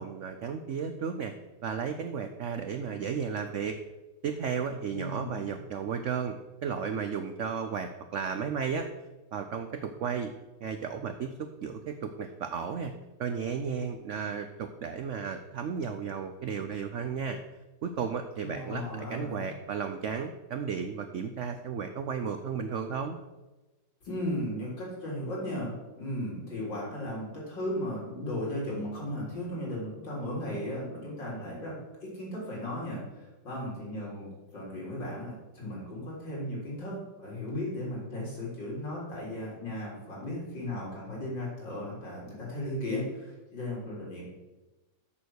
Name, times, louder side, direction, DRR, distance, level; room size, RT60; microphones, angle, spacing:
voice 1, 0.0-1.3 1.6-3.8 4.2-8.9 9.3-10.3 10.6-12.9 13.2-17.4 17.8-23.2, right 6 dB, 80° right, 8 dB, 0.6 m, -34 dB
voice 2, 4.9-5.6 18.4-19.5 24.0-34.3 34.5-44.2, left 1 dB, 80° left, -5 dB, 4.3 m, -36 dB
7.4 x 6.8 x 6.3 m, 1.1 s
omnidirectional pair, 2.0 m